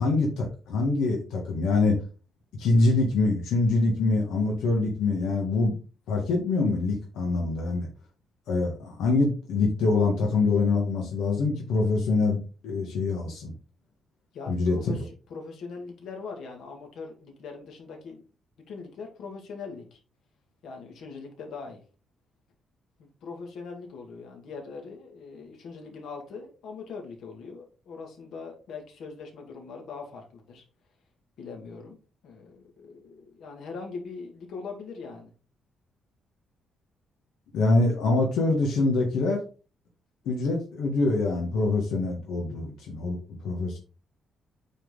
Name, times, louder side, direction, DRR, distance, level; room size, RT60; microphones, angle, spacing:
voice 1, 0.0-2.0 2.6-5.8 6.1-7.9 8.5-13.5 14.5-15.0 37.5-39.4 40.3-43.8, left 3 dB, 80° left, 0 dB, 2.0 m, -25 dB
voice 2, 14.3-18.2 18.7-20.0 20.6-21.8 23.0-30.6 31.4-32.0 32.2-35.3, left 4 dB, 65° left, 2 dB, 2.4 m, -41 dB
8.9 x 4.4 x 4.0 m, 0.35 s
cardioid pair, 155°, 0 cm